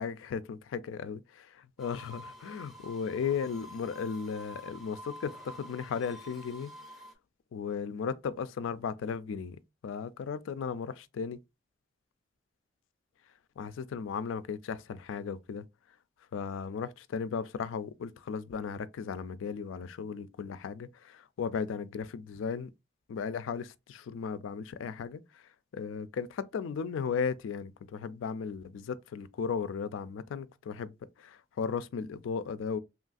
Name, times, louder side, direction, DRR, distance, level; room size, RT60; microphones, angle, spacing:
voice 1, 0.0-6.7 7.5-11.4 13.6-15.6 16.3-22.7 23.1-25.2 25.7-32.8, left 6 dB, 90° left, 0.3 m, -36 dB
sound 1, 1.8-7.1, equal, ahead, 0.4 m, -48 dB
3.0 x 2.3 x 2.5 m
head